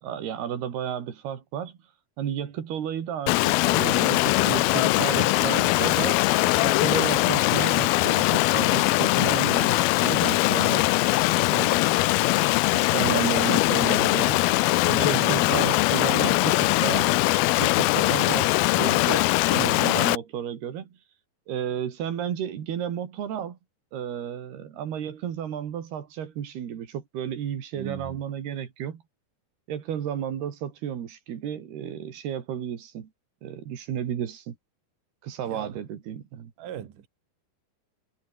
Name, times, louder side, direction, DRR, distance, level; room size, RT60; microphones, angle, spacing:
voice 1, 0.0-1.8 2.2-6.3 6.6-11.0 11.5-12.1 12.7-14.5 14.9-17.2 17.6-18.5 18.8-21.0 21.5-23.6 23.9-29.0 29.7-33.1 33.4-34.6 35.2-36.5, right 9 dB, 85° right, 4.6 m, -32 dB
Stream, 3.3-20.2, left 21 dB, 80° left, 2.4 m, -21 dB
sound 1, 4.2-10.8, right 4 dB, 25° right, 3.6 m, -45 dB
voice 2, 15.1-15.5 27.7-28.2 35.5-35.8 36.6-37.1, right 9 dB, 60° right, 3.5 m, -37 dB
omnidirectional pair, 4.5 m